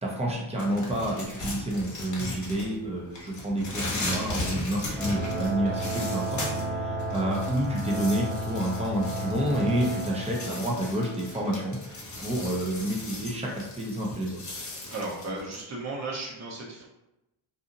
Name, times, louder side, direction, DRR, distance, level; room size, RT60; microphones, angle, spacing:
voice 1, 0.0-14.4, right 1 dB, 15° right, -3 dB, 0.6 m, -29 dB
sound 1, 0.6-2.9 3.1-6.6 7.0-15.6, left 1 dB, 35° left, 0.9 m, -37 dB
sound 2, 5.0-12.2, right 1 dB, 55° right, 1.1 m, -33 dB
voice 2, 14.9-16.8, right 2 dB, 35° right, -3 dB, 0.9 m, -35 dB
2.6 x 2.6 x 2.6 m, 0.92 s
cardioid pair, 115°, 49 cm